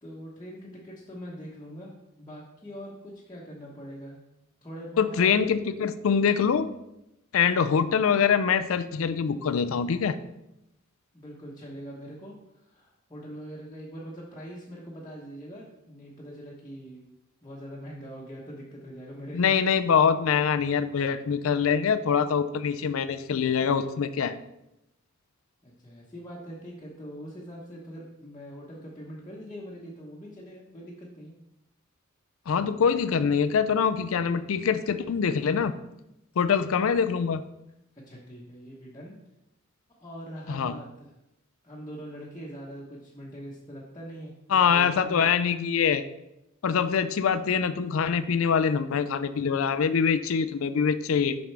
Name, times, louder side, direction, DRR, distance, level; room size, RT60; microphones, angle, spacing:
voice 1, 0.0-4.2 4.6-5.3 11.1-12.3 12.6-17.0 17.4-19.5 25.6-31.3 38.1-39.1 40.0-41.1 41.6-45.3, equal, 20° left, -7 dB, 1.1 m, -42 dB
voice 2, 5.0-6.7 7.3-10.2 19.3-24.3 32.5-35.7 36.4-37.4 40.5-40.8 44.5-46.0 46.6-51.4, left 6 dB, 75° left, 12 dB, 0.4 m, -24 dB
7.6 x 5.3 x 3.4 m, 0.87 s
head